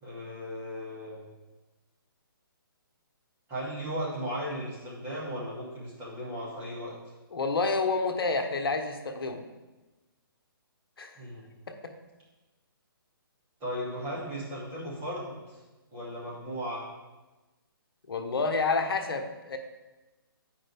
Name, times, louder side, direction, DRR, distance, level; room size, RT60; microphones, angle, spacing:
voice 1, 0.0-1.3 3.5-6.9 11.2-11.5 13.6-15.6 15.9-16.8, equal, 20° right, -8 dB, 2.5 m, -36 dB
voice 2, 7.3-9.4 11.0-11.1 11.7-11.8 18.1-19.6, left 3 dB, 75° left, 6 dB, 1.0 m, -29 dB
9.0 x 5.2 x 3.4 m, 1.1 s
hypercardioid pair, 150°, 12 cm